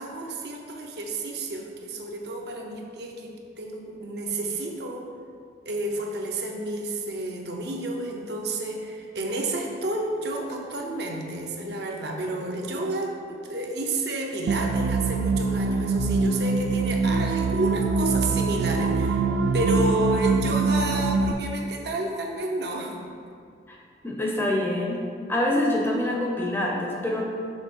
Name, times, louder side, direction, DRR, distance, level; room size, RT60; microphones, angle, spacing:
voice 1, 0.0-3.3 3.6-5.1 5.7-19.2 19.5-23.1, right 2 dB, 55° right, 1 dB, 0.7 m, -30 dB
sound 1, 14.5-21.3, right 4 dB, 85° right, 0.3 m, -24 dB
voice 2, 24.0-25.0 25.3-27.2, left 1 dB, 10° left, -2 dB, 0.6 m, -25 dB
6.4 x 3.3 x 5.4 m, 2.3 s
head